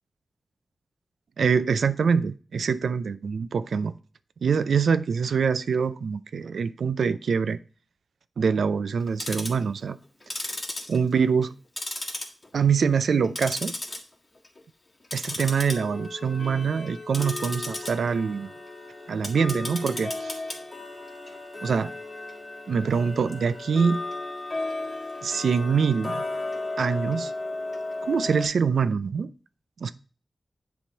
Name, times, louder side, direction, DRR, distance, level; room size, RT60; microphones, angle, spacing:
voice 1, 1.4-3.9 4.4-7.6 8.4-10.0 10.9-11.5 12.5-13.7 15.1-18.5 19.1-20.4 21.6-21.9 22.7-24.0 25.2-26.2 26.8-27.3 28.0-29.3 29.8-29.9, right 6 dB, 90° right, 0.4 m, -24 dB
Tick-tock, 9.0-9.6 10.2-11.5 11.8-12.6 13.0-14.0 14.4-14.6 15.0-28.5, left 2 dB, 30° left, 1.7 m, -34 dB
10.0 x 3.6 x 4.6 m
wide cardioid pair, 155°, 0 cm